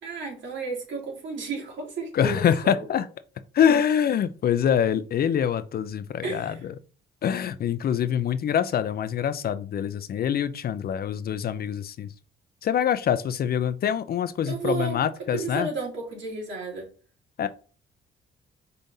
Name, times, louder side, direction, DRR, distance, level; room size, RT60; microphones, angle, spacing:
voice 1, 0.0-2.4 2.8-2.9 6.2-6.6 14.5-15.0 15.3-16.9, right 4 dB, 70° right, 2.6 m, -32 dB
voice 2, 2.1-3.1 3.5-6.7 7.2-12.1 12.6-15.7 17.4-17.5, left 8 dB, 50° left, 0.5 m, -25 dB
5.4 x 3.3 x 2.7 m
cardioid pair, 90°, 20 cm